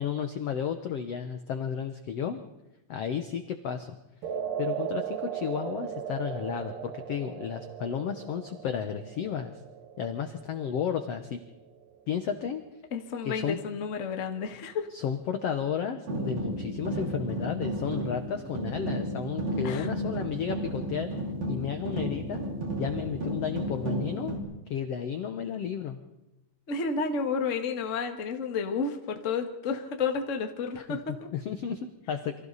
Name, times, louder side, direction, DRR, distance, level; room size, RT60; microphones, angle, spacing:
voice 1, 0.0-2.4 2.9-3.9 4.6-9.6 10.0-11.4 12.1-12.6 13.2-13.6 14.9-21.1 21.5-22.5 22.7-24.3 24.7-26.0 30.7-32.4, left 8 dB, 70° left, 8 dB, 1.5 m, -33 dB
sound 1, 4.2-12.6, right 9 dB, 70° right, 3.1 m, -38 dB
voice 2, 12.9-14.9 19.6-19.9 26.7-31.3, left 5 dB, 40° left, 5 dB, 1.1 m, -31 dB
sound 2, 16.1-24.4, right 1 dB, 45° right, 6.0 m, -33 dB
28.5 x 24.5 x 4.1 m, 0.94 s
omnidirectional pair, 4.3 m